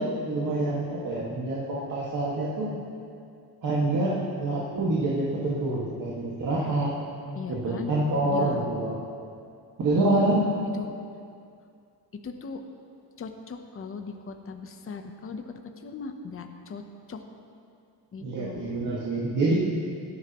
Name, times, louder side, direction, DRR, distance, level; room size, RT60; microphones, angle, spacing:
voice 1, 0.0-2.7 3.6-6.9 7.5-9.0 9.8-10.5 18.2-19.6, right 2 dB, 45° right, -6 dB, 1.8 m, -26 dB
voice 2, 7.4-7.9 8.2-8.7 9.9-11.0 12.2-12.6 13.2-15.5 15.8-16.8 17.1-17.2 18.1-18.7, left 5 dB, 30° left, 5 dB, 0.8 m, -38 dB
17.0 x 12.5 x 3.0 m, 2.4 s
cardioid pair, 135°, 42 cm